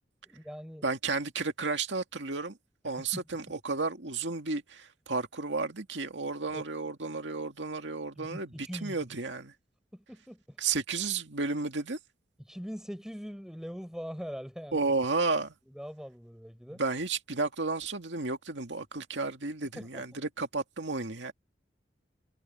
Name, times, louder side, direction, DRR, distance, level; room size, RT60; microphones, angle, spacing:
voice 1, 0.3-0.9 2.8-3.2 6.5-6.6 8.1-9.0 9.9-10.6 12.4-14.9 15.7-16.8 19.8-20.2, equal, 5° right, 5.8 m, -42 dB
voice 2, 0.8-2.6 2.8-8.5 8.8-9.5 10.6-12.0 14.7-15.5 16.8-21.3, right 3 dB, 85° right, 2.1 m, -32 dB
head